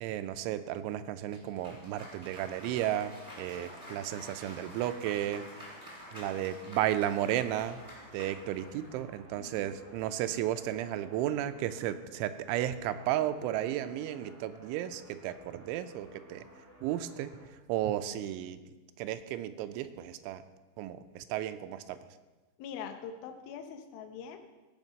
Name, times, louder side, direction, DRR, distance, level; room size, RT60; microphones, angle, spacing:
voice 1, 0.0-5.5 6.1-7.8 8.1-16.5 16.8-18.6 19.0-20.4 20.8-22.0, right 12 dB, 90° right, 11 dB, 3.0 m, -34 dB
Cheering / Applause, 1.3-9.0, equal, 10° right, 2.3 m, -48 dB
sound 1, 6.4-17.4, equal, 15° left, 0.5 m, -56 dB
voice 2, 9.4-9.7 22.6-24.4, left 7 dB, 75° left, 6 dB, 2.3 m, -43 dB
16.5 x 5.9 x 5.3 m, 1.2 s
omnidirectional pair, 5.4 m